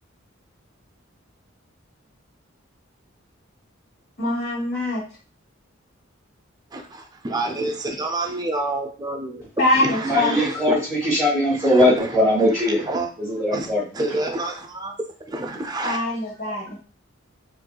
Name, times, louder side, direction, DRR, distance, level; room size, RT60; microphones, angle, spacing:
voice 1, 4.2-5.0 9.6-10.5 15.8-16.8, left 1 dB, 55° left, -4 dB, 1.3 m, -23 dB
voice 2, 6.7-9.5 9.7-10.5 11.7-11.9 12.9-13.1 13.5-13.7 13.9-14.9 15.3-16.0, right 2 dB, 20° right, 3 dB, 0.5 m, -28 dB
voice 3, 10.0-12.8 13.2-13.8, left 1 dB, ahead, -6 dB, 1.0 m, -20 dB
4.3 x 2.6 x 2.3 m, 0.38 s
head